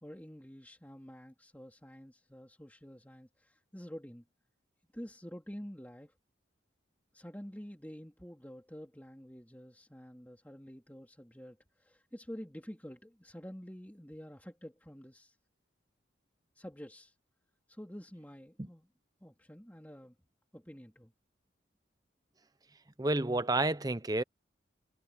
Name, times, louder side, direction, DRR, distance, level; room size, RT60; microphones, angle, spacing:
voice 1, 0.0-4.2 4.9-6.1 7.1-15.4 16.5-17.1 17.7-18.9 19.2-20.1 20.5-21.1, equal, 10° left, 3.2 m, -48 dB
voice 2, 23.0-24.2, right 2 dB, 20° right, 0.7 m, -30 dB
head